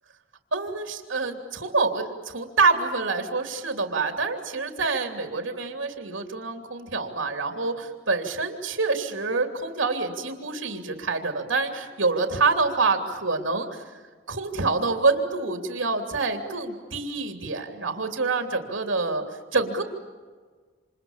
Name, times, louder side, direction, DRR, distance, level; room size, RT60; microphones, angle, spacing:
voice 1, 0.5-13.8 14.3-19.2 19.5-19.8, right 3 dB, 85° right, 5 dB, 3.1 m, -26 dB
29.0 x 27.0 x 7.4 m, 1.5 s
head